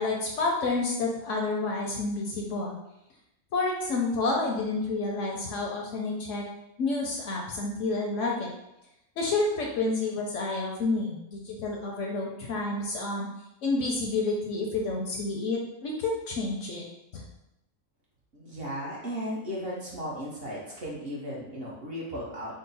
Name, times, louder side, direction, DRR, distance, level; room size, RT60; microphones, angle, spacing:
voice 1, 0.0-2.8 3.5-6.4 6.8-8.5 9.2-13.3 13.6-16.8 17.1-17.2, left 3 dB, 65° left, -1 dB, 0.8 m, -29 dB
voice 2, 18.3-22.6, equal, 50° right, -5 dB, 0.9 m, -36 dB
3.8 x 2.0 x 4.0 m, 0.88 s
omnidirectional pair, 1.5 m